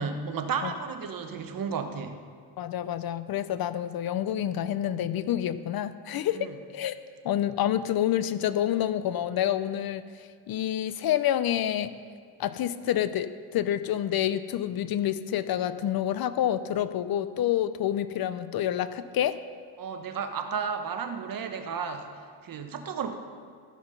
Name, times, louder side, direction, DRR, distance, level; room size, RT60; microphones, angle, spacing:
voice 1, 0.0-2.2 6.3-6.6 19.8-22.1 22.4-23.1, right 6 dB, 50° right, 7 dB, 1.0 m, -33 dB
voice 2, 2.6-7.0 7.2-10.0 10.5-11.9 12.4-19.4, left 11 dB, 55° left, 13 dB, 0.5 m, -28 dB
13.0 x 5.9 x 5.5 m, 2.2 s
cardioid pair, 105°, 45 cm